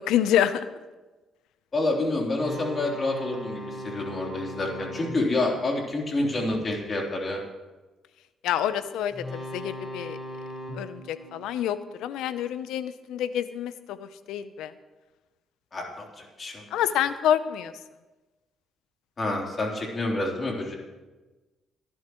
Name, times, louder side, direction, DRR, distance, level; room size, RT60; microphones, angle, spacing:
voice 1, 0.1-0.7 8.4-10.2 10.7-14.7 16.7-17.7, left 10 dB, 90° left, 13 dB, 0.7 m, -27 dB
voice 2, 1.7-7.4 15.7-16.1 16.4-16.6 19.2-20.7, left 2 dB, 40° left, -1 dB, 3.5 m, -28 dB
sound 1, 2.4-6.8 9.1-12.4, equal, ahead, 4.9 m, -39 dB
23.5 x 11.0 x 3.1 m, 1.2 s
cardioid pair, 90°, 0 cm